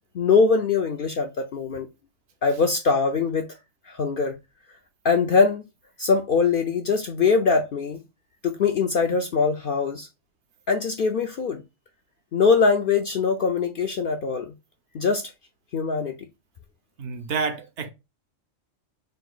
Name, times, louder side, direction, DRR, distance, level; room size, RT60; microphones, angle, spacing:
voice 1, 0.1-1.9 2.4-3.5 3.9-4.4 5.0-5.6 6.0-8.0 8.4-10.1 10.7-11.6 12.3-14.5 14.9-15.2 15.7-16.1, left 5 dB, 60° left, 0.6 m, -22 dB
voice 2, 17.0-17.9, right 5 dB, 65° right, 0.9 m, -29 dB
3.9 x 2.6 x 3.7 m
omnidirectional pair, 1.4 m